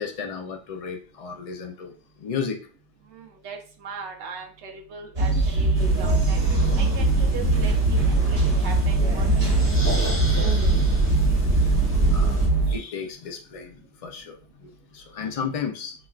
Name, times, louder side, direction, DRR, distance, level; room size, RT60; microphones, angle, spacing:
voice 1, 0.0-1.9 2.2-2.6 10.3-10.4 11.4-11.8 12.1-15.9, left 6 dB, 70° left, 3 dB, 0.3 m, -34 dB
voice 2, 3.1-5.3 5.6-6.4 6.8-10.5, right 5 dB, 75° right, 1 dB, 0.9 m, -39 dB
sound 1, 5.2-12.8, right 2 dB, 60° right, 1.4 m, -21 dB
sound 2, 5.7-12.5, right 2 dB, 15° left, 0.7 m, -27 dB
6.0 x 2.2 x 2.3 m, 0.38 s
omnidirectional pair, 1.2 m